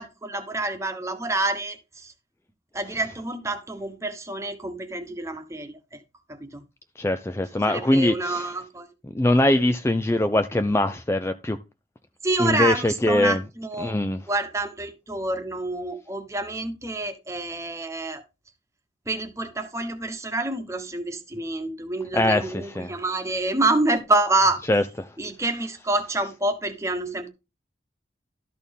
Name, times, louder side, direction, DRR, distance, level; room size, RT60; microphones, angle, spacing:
voice 1, 0.0-2.1 2.7-6.0 6.3-6.6 7.7-8.9 12.2-14.0 14.3-18.2 19.1-24.6 25.2-27.3, right 2 dB, 15° right, 1.2 m, -27 dB
voice 2, 7.0-8.5 9.1-11.6 12.4-13.4 13.8-14.2 22.1-22.9 24.7-25.2, left 1 dB, 15° left, 0.4 m, -22 dB
12.5 x 4.3 x 5.3 m
head